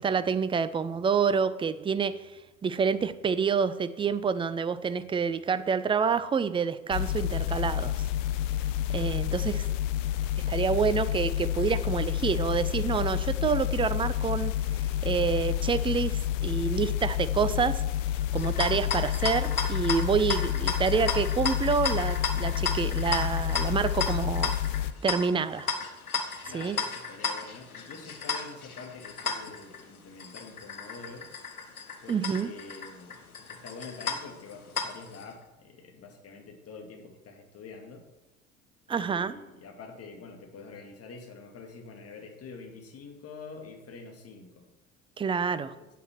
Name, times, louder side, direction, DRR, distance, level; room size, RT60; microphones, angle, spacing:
voice 1, 0.0-2.2 2.6-8.1 8.9-9.6 10.5-14.5 15.0-17.8 18.3-24.5 25.0-25.7 26.5-26.8 32.1-32.5 38.9-39.3 45.2-45.7, right 6 dB, 15° right, 14 dB, 0.5 m, -27 dB
sound 1, 6.9-24.9, left 12 dB, 60° left, 0.6 m, -29 dB
sound 2, 18.4-35.2, left 5 dB, 85° left, 0.9 m, -34 dB
voice 2, 26.5-31.3 32.0-33.2 33.5-38.1 38.9-44.7 45.5-45.9, left 4 dB, 35° left, 3 dB, 2.3 m, -46 dB
9.2 x 7.7 x 6.0 m, 1.0 s
figure-of-eight pair, 65°, 42 cm